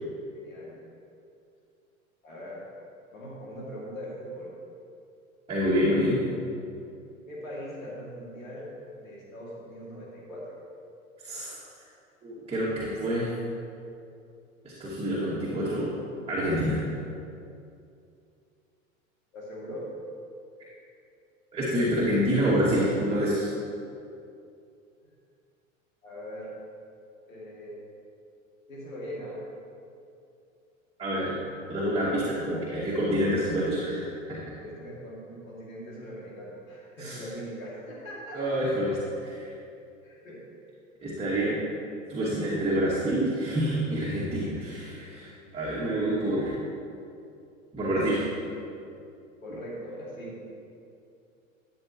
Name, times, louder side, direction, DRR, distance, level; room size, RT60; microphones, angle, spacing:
voice 1, 0.3-0.8 2.2-2.6 3.1-4.6 7.3-8.7 9.0-10.6 19.3-19.9 26.0-26.5 27.3-27.8 28.7-29.4 34.6-38.6 40.0-40.4 49.4-50.4, equal, 75° left, -5 dB, 2.6 m, -40 dB
voice 2, 5.5-6.2 11.2-11.6 12.2-13.3 14.6-15.9 16.3-16.8 21.5-23.5 31.0-31.4 31.7-34.5 37.0-37.2 38.3-39.5 41.0-41.6 42.1-46.5 47.7-48.2, equal, 15° right, -8 dB, 2.2 m, -27 dB
13.0 x 9.4 x 3.1 m, 2.5 s
figure-of-eight pair, 90°, 41 cm